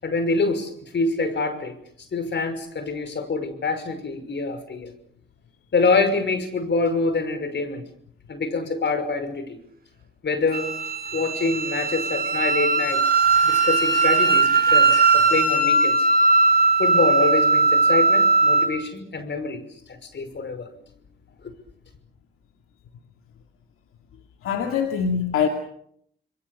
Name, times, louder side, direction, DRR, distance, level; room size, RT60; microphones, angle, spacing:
voice 1, 0.0-1.7 2.1-4.9 5.7-7.8 8.3-9.6 10.2-10.7 11.1-13.0 13.4-15.9 16.8-19.6 19.9-20.7, left 3 dB, 55° left, 5.9 m, -25 dB
Wind instrument woodwind instrument, 10.5-18.7, right 3 dB, 45° right, 6.8 m, -19 dB
voice 2, 24.4-25.5, left 7 dB, 85° left, 2.4 m, -23 dB
28.5 x 22.0 x 6.9 m
supercardioid pair, 55°, 21 cm